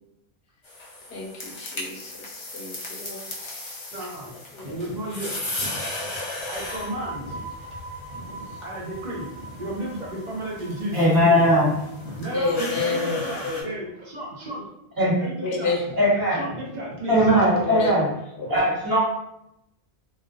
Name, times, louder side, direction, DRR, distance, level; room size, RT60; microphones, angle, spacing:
sound 1, 0.6-13.6, left 2 dB, 35° left, 0.5 m, -37 dB
voice 1, 1.1-3.3 4.5-4.8 12.3-13.6 15.4-15.8 17.5-17.9 18.4-18.7, left 3 dB, 70° left, -2 dB, 0.9 m, -29 dB
voice 2, 3.9-4.3 4.6-5.8 6.4-7.5 8.1-14.6 15.2-15.7 16.3-17.4 18.4-18.6, right 1 dB, 50° right, -4 dB, 0.7 m, -34 dB
sound 2, 6.4-13.9, right 2 dB, 5° left, 1.1 m, -42 dB
voice 3, 10.9-11.8 15.0-15.2 15.9-16.4 17.1-18.1 18.5-19.0, equal, 20° right, -8 dB, 1.0 m, -19 dB
2.3 x 2.1 x 2.5 m, 0.83 s
omnidirectional pair, 1.1 m